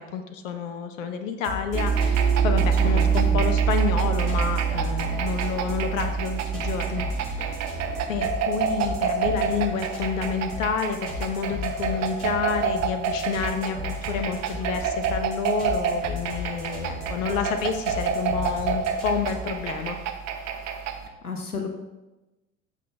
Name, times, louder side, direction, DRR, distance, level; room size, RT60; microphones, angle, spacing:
voice 1, 0.1-7.6 8.1-20.0, left 6 dB, 60° left, 8 dB, 1.0 m, -29 dB
sound 1, 1.4-19.6, left 3 dB, 75° right, 3.2 m, -36 dB
sound 2, 1.7-10.4, right 7 dB, 5° right, 1.2 m, -26 dB
sound 3, 1.8-21.1, right 6 dB, 40° right, 1.0 m, -30 dB
voice 2, 2.5-3.4 21.2-21.7, left 4 dB, 85° left, 4 dB, 1.0 m, -33 dB
13.5 x 5.8 x 3.5 m, 1.1 s
figure-of-eight pair, 70°, 43 cm